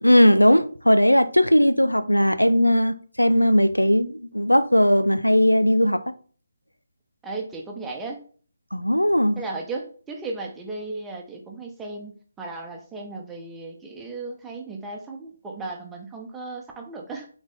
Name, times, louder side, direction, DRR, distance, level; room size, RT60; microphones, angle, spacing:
voice 1, 0.0-6.1 8.7-9.4, equal, 85° left, 0.6 m, -18 dB
voice 2, 7.2-8.2 9.4-17.3, right 3 dB, 5° right, 1.0 m, -35 dB
8.6 x 4.1 x 3.7 m
figure-of-eight pair, 150°, 0 cm